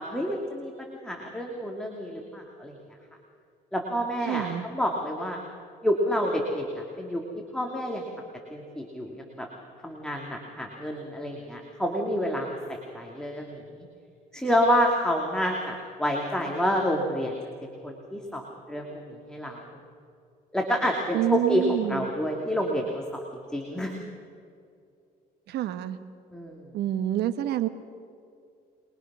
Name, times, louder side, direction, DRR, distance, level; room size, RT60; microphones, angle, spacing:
voice 1, 0.0-2.8 3.7-5.4 5.8-7.2 7.5-8.1 8.5-9.5 9.8-13.9 14.3-17.3 17.6-19.6 20.5-21.6 21.9-23.9 26.3-26.7, equal, 5° left, 0 dB, 2.5 m, -29 dB
voice 2, 4.3-4.7 21.1-22.1 25.5-26.0 26.7-27.7, right 12 dB, 80° right, 11 dB, 1.2 m, -27 dB
24.5 x 22.0 x 6.2 m, 2.4 s
cardioid pair, 110°, 17 cm